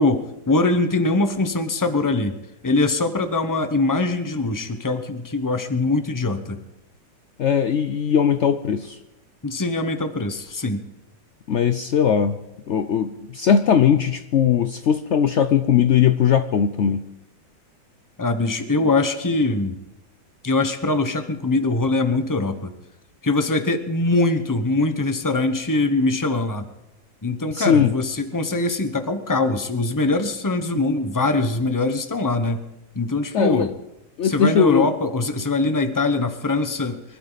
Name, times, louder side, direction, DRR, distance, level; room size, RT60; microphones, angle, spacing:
voice 1, 0.0-6.6 9.4-10.8 18.2-19.8 20.4-22.7 23.2-26.7 27.2-32.6 32.9-33.7 34.2-37.0, left 2 dB, 15° left, 8 dB, 0.8 m, -22 dB
voice 2, 7.4-9.0 11.5-12.4 12.7-17.1 18.8-18.9 27.5-27.9 33.3-33.7 34.2-34.9, left 8 dB, 80° left, 9 dB, 0.6 m, -19 dB
24.5 x 12.5 x 4.0 m, 0.93 s
omnidirectional pair, 2.1 m